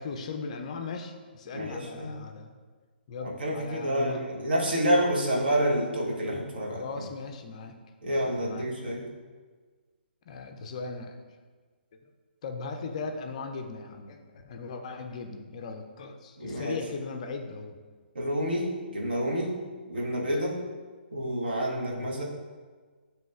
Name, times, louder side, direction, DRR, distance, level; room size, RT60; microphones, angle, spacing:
voice 1, 0.0-2.6 3.1-4.2 6.7-7.8 8.2-8.7 10.3-11.2 12.4-17.8 21.7-22.1, left 4 dB, 40° left, 4 dB, 0.4 m, -38 dB
voice 2, 1.5-2.1 3.2-6.8 8.0-9.0 16.4-16.8 18.1-19.6 19.9-20.6 21.1-22.2, equal, 60° right, -2 dB, 0.9 m, -28 dB
7.1 x 2.8 x 2.2 m, 1.5 s
figure-of-eight pair, 130°, 6 cm